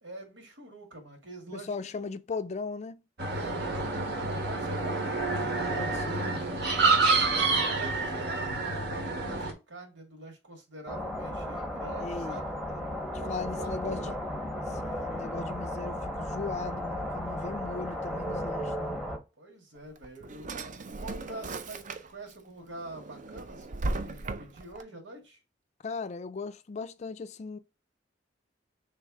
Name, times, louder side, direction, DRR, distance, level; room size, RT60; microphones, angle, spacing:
voice 1, 0.0-1.7 2.0-2.1 3.3-6.9 7.4-12.6 13.0-14.2 19.4-20.6 21.0-25.4, right 2 dB, 90° right, 1.8 m, -45 dB
voice 2, 1.5-3.0 5.7-6.3 12.0-12.4 12.7-12.8 13.3-14.1 14.7-19.0 25.8-27.6, left 4 dB, 40° left, 0.4 m, -38 dB
sound 1, 3.2-9.5, right 3 dB, 65° right, 1.1 m, -28 dB
sound 2, 10.9-19.2, left 1 dB, ahead, 0.9 m, -35 dB
Drawer open or close, 19.8-22.3 22.8-24.8, right 2 dB, 45° right, 0.5 m, -37 dB
3.4 x 3.2 x 4.6 m
head